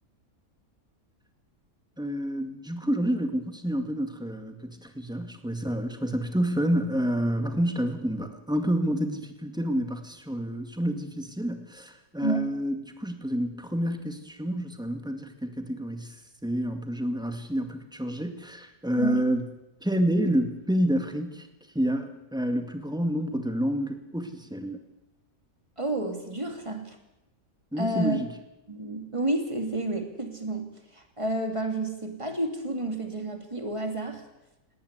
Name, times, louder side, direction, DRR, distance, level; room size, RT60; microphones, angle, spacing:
voice 1, 2.0-16.1 16.4-19.5 19.8-21.5 21.7-24.8 27.7-28.3, equal, 5° right, 6 dB, 2.1 m, -29 dB
voice 2, 12.2-12.5 19.0-19.2 25.8-27.0 27.8-28.2 28.7-34.2, right 2 dB, 20° right, 4 dB, 3.0 m, -30 dB
19.0 x 18.0 x 8.3 m, 0.92 s
omnidirectional pair, 1.5 m